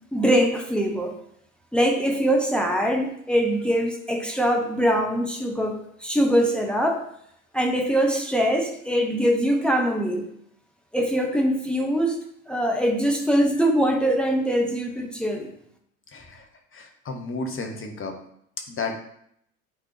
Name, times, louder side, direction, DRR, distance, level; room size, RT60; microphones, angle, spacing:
voice 1, 0.1-1.1 1.7-7.0 7.5-10.3 10.9-12.2 12.5-15.5, equal, ahead, 2 dB, 1.2 m, -23 dB
voice 2, 16.1-16.5 16.7-18.1 18.7-18.9, left 3 dB, 30° left, 3 dB, 1.5 m, -32 dB
9.0 x 4.0 x 3.4 m, 0.69 s
figure-of-eight pair, 65°, 41 cm